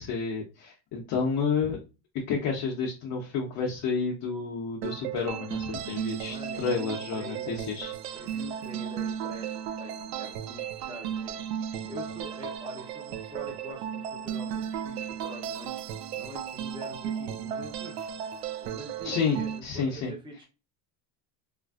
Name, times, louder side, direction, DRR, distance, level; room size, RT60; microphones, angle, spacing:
voice 1, 0.0-1.8 2.3-8.4 19.0-20.1, left 5 dB, 40° left, 0 dB, 0.6 m, -30 dB
sound 1, 4.8-19.6, right 9 dB, 75° right, 0.6 m, -35 dB
voice 2, 6.2-7.6 8.1-15.8 16.1-18.1 18.6-20.5, equal, 10° right, -1 dB, 0.8 m, -44 dB
3.1 x 2.5 x 2.4 m, 0.30 s
supercardioid pair, 125°, 49 cm